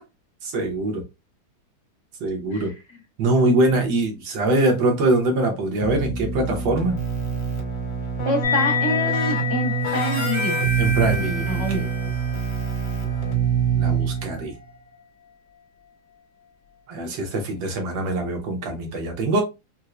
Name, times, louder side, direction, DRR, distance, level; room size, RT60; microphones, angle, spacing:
voice 1, 0.4-1.0 2.2-2.7 3.2-7.0 10.8-11.9 13.8-14.5 16.9-19.4, right 2 dB, 70° right, 1.7 m, -23 dB
Keyboard (musical), 5.8-14.5, right 6 dB, 70° left, 1.8 m, -25 dB
voice 2, 8.2-10.6 11.5-11.8, left 1 dB, 25° left, 0.6 m, -27 dB
sound 1, 8.4-15.3, left 8 dB, 45° left, 1.0 m, -31 dB
Harmonica, 9.9-14.3, equal, 45° right, 1.5 m, -33 dB
4.5 x 2.1 x 2.4 m
omnidirectional pair, 2.2 m